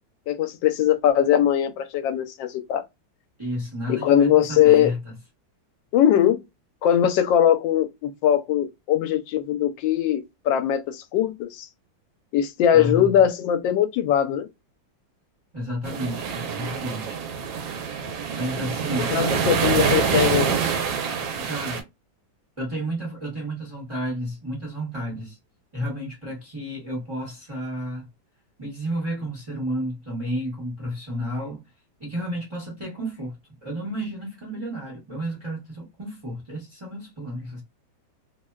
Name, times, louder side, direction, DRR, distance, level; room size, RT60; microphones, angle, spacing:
voice 1, 0.3-2.8 3.9-4.9 5.9-6.4 6.8-11.7 12.3-14.5 19.1-20.5, left 10 dB, 80° left, 1.2 m, -20 dB
voice 2, 3.4-5.0 12.7-13.1 15.5-17.2 18.3-19.2 21.4-21.8 22.6-25.4 25.7-28.1 28.6-31.6 32.0-33.3 33.6-37.6, equal, 20° right, 0.8 m, -31 dB
sound 1, 15.8-21.8, right 6 dB, 90° right, 1.4 m, -26 dB
3.3 x 2.1 x 2.3 m
omnidirectional pair, 2.1 m